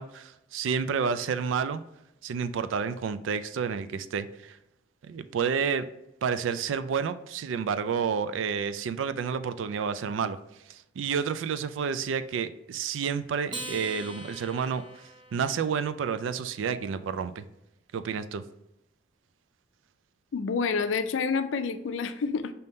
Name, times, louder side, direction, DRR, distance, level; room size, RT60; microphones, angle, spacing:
voice 1, 0.0-1.8 2.2-4.6 5.0-5.9 6.2-10.4 10.7-15.0 15.3-17.4 17.9-18.4, right 6 dB, 90° right, 12 dB, 0.3 m, -30 dB
Acoustic guitar, 13.5-16.2, right 2 dB, 25° right, 0.7 m, -42 dB
voice 2, 20.3-22.5, left 5 dB, 80° left, 11 dB, 0.4 m, -28 dB
5.2 x 2.8 x 3.5 m, 0.86 s
head